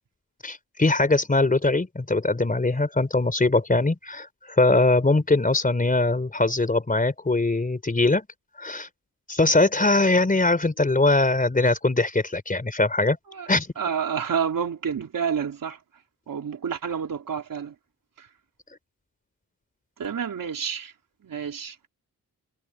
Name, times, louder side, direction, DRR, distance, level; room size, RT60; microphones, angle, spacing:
voice 1, 0.4-8.3 8.6-8.9 9.3-13.2 13.5-13.7, left 2 dB, 25° left, 4.3 m, -21 dB
voice 2, 13.8-15.8 16.3-17.8 18.2-18.3 20.0-20.9 21.2-21.8, right 7 dB, 65° right, 3.7 m, -29 dB
wide cardioid pair, 115°, 36 cm